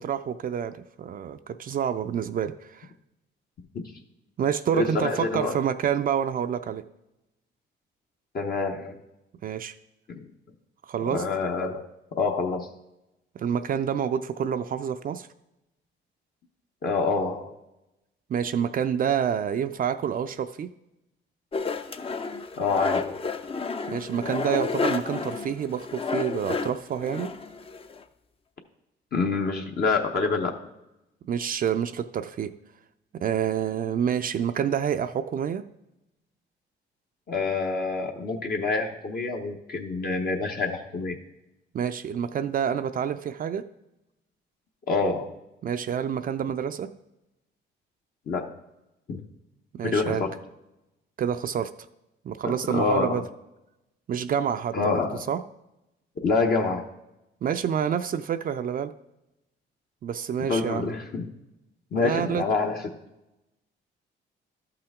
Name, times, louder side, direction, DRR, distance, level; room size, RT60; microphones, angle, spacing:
voice 1, 0.0-2.9 4.4-6.8 9.4-9.7 10.9-11.2 13.4-15.3 18.3-20.7 23.9-27.4 31.2-32.5 33.1-35.7 41.7-43.7 45.6-47.0 49.7-50.2 51.2-51.7 52.2-53.2 54.1-55.4 57.4-58.9 60.0-60.9 61.9-62.4, right 8 dB, 45° right, 9 dB, 0.4 m, -28 dB
voice 2, 4.7-5.6 8.3-9.0 10.1-10.3 11.1-11.8 12.2-12.7 16.8-17.6 22.6-23.2 29.1-30.6 37.3-41.2 44.9-45.3 48.3-48.5 49.1-49.2 49.8-50.3 52.4-53.3 54.7-55.2 56.2-56.9 60.5-61.3 61.9-63.0, left 4 dB, 50° left, 1 dB, 0.9 m, -27 dB
sound 1, 21.5-28.0, left 4 dB, 30° left, 0.5 m, -31 dB
12.5 x 5.8 x 3.6 m, 0.92 s
cardioid pair, 90°, 20 cm